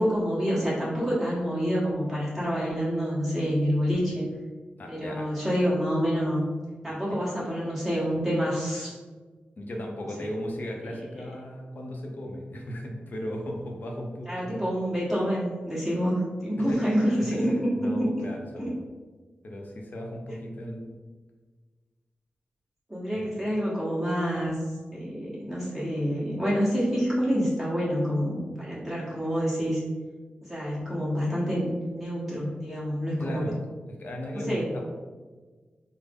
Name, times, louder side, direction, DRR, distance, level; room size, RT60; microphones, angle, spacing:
voice 1, 0.0-4.2 4.9-6.5 6.8-9.0 10.2-10.3 10.9-11.0 14.3-18.1 18.6-18.7 20.8-20.9 22.9-24.6 24.9-29.8 30.5-33.5 34.5-34.7, equal, 10° right, -8 dB, 1.2 m, -27 dB
voice 2, 4.8-5.3 7.1-7.2 9.6-14.6 16.6-16.8 17.3-17.4 17.8-18.8 19.4-21.0 23.1-23.4 33.2-33.5 34.0-34.9, equal, 60° left, 1 dB, 0.6 m, -36 dB
3.6 x 2.0 x 3.5 m, 1.4 s
wide cardioid pair, 95°, 3 cm